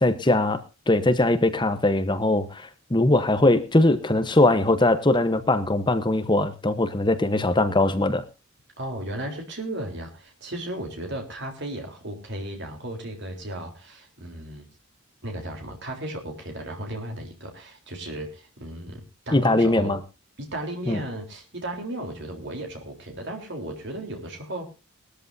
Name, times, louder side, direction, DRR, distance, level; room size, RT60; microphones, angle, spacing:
voice 1, 0.0-8.2 19.3-20.0 20.9-21.0, left 2 dB, 20° left, 10 dB, 1.0 m, -21 dB
voice 2, 8.8-14.7 15.2-20.0 20.4-24.7, right 1 dB, 55° right, 3 dB, 3.7 m, -35 dB
20.5 x 13.5 x 2.7 m, 0.29 s
head